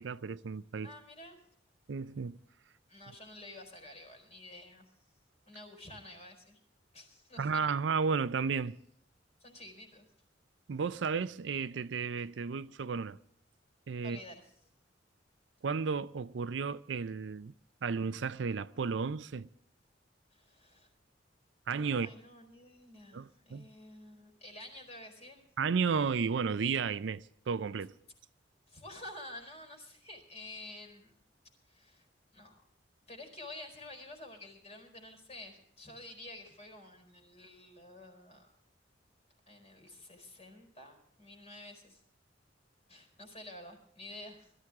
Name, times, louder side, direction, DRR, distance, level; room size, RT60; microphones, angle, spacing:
voice 1, 0.0-0.9 1.9-2.4 7.4-8.8 10.7-13.2 13.9-14.2 15.6-17.5 17.8-19.5 21.7-22.1 23.1-23.7 25.6-27.9, right 5 dB, 75° right, 0.5 m, -33 dB
voice 2, 0.8-1.5 2.9-4.9 5.5-6.6 6.9-7.6 9.4-10.1 14.0-14.4 20.3-20.9 21.9-25.4 28.7-31.2 31.7-32.1 32.3-32.6 33.1-38.6 39.5-42.0 42.9-44.5, left 1 dB, 35° left, 4.6 m, -50 dB
22.0 x 13.5 x 3.6 m
head